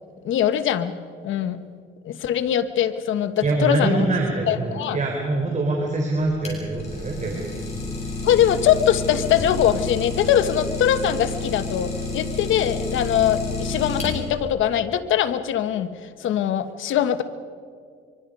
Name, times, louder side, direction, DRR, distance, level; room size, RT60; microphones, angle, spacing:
voice 1, 0.2-0.9 1.2-1.6 2.0-4.0 4.5-5.0 8.2-15.9 16.2-17.2, left 10 dB, 80° left, 10 dB, 1.3 m, -22 dB
voice 2, 3.4-7.6, right 2 dB, 35° right, 1 dB, 4.0 m, -24 dB
Idling, 6.2-14.5, left 3 dB, 35° left, 7.9 m, -30 dB
24.5 x 24.0 x 5.4 m, 2.1 s
cardioid pair, 90°, 20 cm